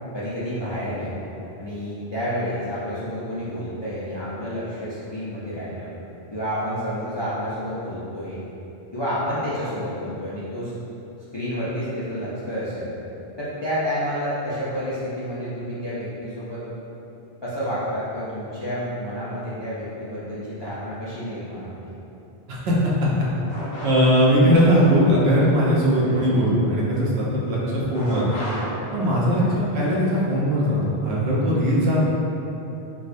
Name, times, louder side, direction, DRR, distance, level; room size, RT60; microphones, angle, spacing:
voice 1, 0.1-1.2 1.6-5.9 6.3-8.4 8.9-10.7 11.3-12.9 13.4-16.6 17.4-21.9 26.0-26.3 29.4-29.6, equal, 45° left, -10 dB, 0.3 m, -29 dB
sound 1, 23.5-24.3 27.9-29.5, equal, 75° left, 1.0 m, -34 dB
voice 2, 23.8-28.3 28.9-32.0, equal, 70° right, -6 dB, 0.9 m, -19 dB
4.5 x 2.1 x 2.5 m, 3.0 s
omnidirectional pair, 1.1 m